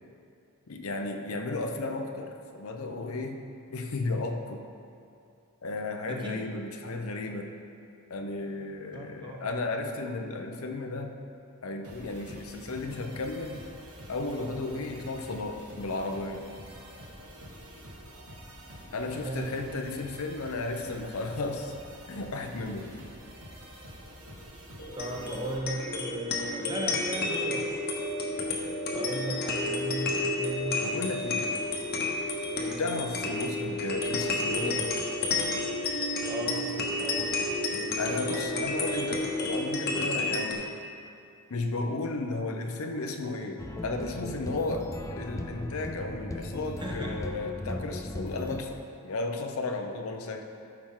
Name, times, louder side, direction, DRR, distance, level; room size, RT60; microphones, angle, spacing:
voice 1, 0.7-3.4 3.7-4.6 5.6-7.5 8.1-11.1 11.6-13.6 14.1-16.5 18.9-21.7 22.1-23.0 30.8-31.5 32.8-34.9 38.0-40.7 41.5-50.4, left 3 dB, 75° left, 3 dB, 0.7 m, -34 dB
voice 2, 6.1-6.4 8.9-9.5 19.2-19.5 24.9-27.9 28.9-30.8 32.6-32.9 36.3-36.7 37.0-37.3 37.7-38.7 46.8-47.1, right 1 dB, 20° right, 0 dB, 0.9 m, -36 dB
sound 1, 11.8-25.6, equal, 80° right, 1.4 m, -47 dB
sound 2, 24.8-40.5, left 2 dB, 45° left, 1.1 m, -31 dB
sound 3, 43.6-48.6, left 1 dB, 15° left, 0.3 m, -37 dB
13.5 x 5.9 x 3.7 m, 2.6 s
head